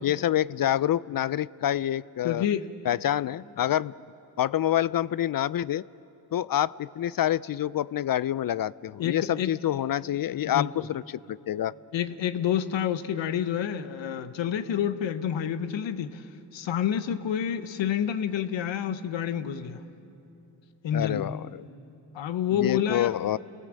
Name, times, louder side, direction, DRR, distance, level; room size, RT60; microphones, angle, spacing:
voice 1, 0.0-2.4 2.9-3.9 4.4-5.8 6.3-11.0 11.3-11.7 20.9-21.6 22.5-23.4, left 11 dB, 50° left, 19 dB, 0.5 m, -27 dB
voice 2, 2.2-2.7 9.0-9.5 10.4-10.9 11.9-16.2 16.5-19.8 20.8-21.3 22.1-23.4, left 9 dB, 80° left, 11 dB, 1.1 m, -28 dB
29.5 x 17.5 x 7.5 m, 2.9 s
supercardioid pair, 50°, 44 cm